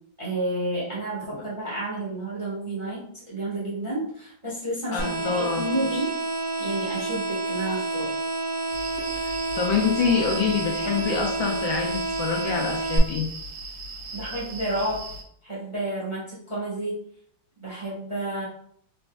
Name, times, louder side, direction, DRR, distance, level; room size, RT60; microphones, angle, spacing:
voice 1, 0.2-6.2 6.6-8.1 14.1-15.0 15.4-17.0 17.6-18.4, right 1 dB, 20° right, -8 dB, 1.0 m, -30 dB
voice 2, 4.9-5.7 9.5-13.3, left 6 dB, 75° left, 0 dB, 1.2 m, -26 dB
sound 1, 5.0-13.0, right 3 dB, 45° right, 1.0 m, -29 dB
sound 2, 8.7-15.2, right 2 dB, 85° right, 1.5 m, -38 dB
4.1 x 3.4 x 2.2 m, 0.66 s
omnidirectional pair, 2.4 m